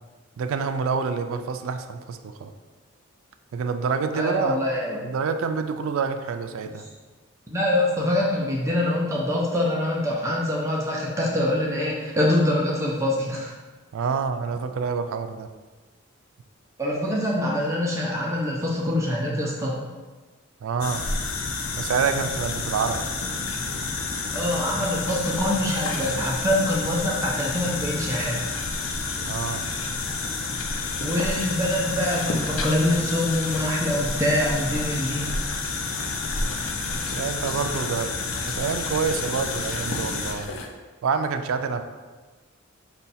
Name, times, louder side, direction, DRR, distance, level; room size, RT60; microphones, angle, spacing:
voice 1, 0.4-2.5 3.5-4.6 5.0-6.8 13.9-15.5 20.6-21.1 21.8-23.0 29.3-29.7 37.1-38.2 38.4-40.5 41.0-41.8, right 5 dB, 75° right, 8 dB, 0.3 m, -27 dB
voice 2, 4.1-5.0 7.5-13.5 16.8-19.8 24.3-28.4 31.0-35.3, left 1 dB, 15° right, -4 dB, 0.5 m, -24 dB
sound 1, 20.8-40.7, left 3 dB, 70° left, 0.5 m, -29 dB
5.1 x 2.3 x 4.1 m, 1.3 s
head